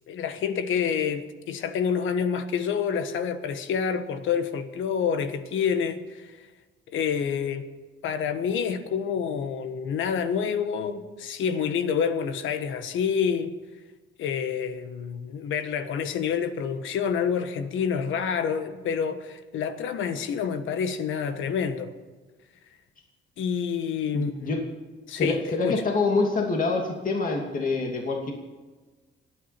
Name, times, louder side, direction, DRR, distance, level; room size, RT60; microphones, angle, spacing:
voice 1, 0.1-6.5 6.9-7.6 8.0-13.5 14.2-21.9 23.4-24.5 25.1-25.8, left 7 dB, 85° left, 1.4 m, -28 dB
voice 2, 24.1-24.6 25.2-28.3, left 3 dB, 45° left, 2.6 m, -26 dB
26.0 x 9.7 x 4.4 m
cardioid pair, 90°, 20 cm